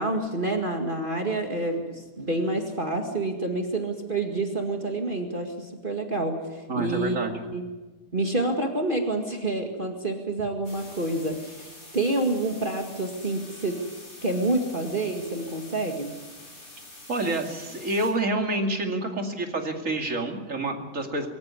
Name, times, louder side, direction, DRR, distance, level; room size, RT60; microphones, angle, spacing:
voice 1, 0.0-7.2 7.5-7.6 8.1-13.8 14.2-16.1, right 2 dB, 30° right, 3 dB, 2.1 m, -28 dB
voice 2, 6.7-7.4 17.1-21.3, right 2 dB, 50° right, 3 dB, 2.8 m, -28 dB
sound 1, 10.6-18.1, left 2 dB, 55° left, 5.4 m, -46 dB
24.5 x 14.0 x 9.6 m, 1.2 s
omnidirectional pair, 1.7 m